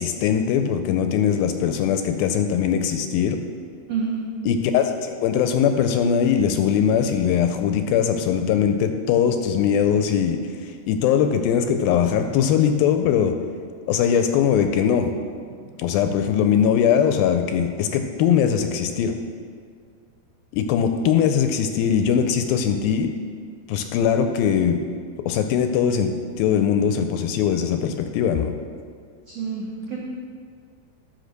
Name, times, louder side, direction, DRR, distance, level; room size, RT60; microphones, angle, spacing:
voice 1, 0.0-3.4 4.5-13.3 13.9-15.1 15.8-19.2 20.5-23.1 23.7-24.8 25.3-26.1 26.4-28.6, left 8 dB, 80° left, 7 dB, 2.2 m, -21 dB
voice 2, 3.9-4.3 14.6-14.7 15.4-16.0 29.3-30.0, right 5 dB, 80° right, -3 dB, 1.4 m, -30 dB
10.0 x 6.1 x 6.5 m, 2.1 s
omnidirectional pair, 4.5 m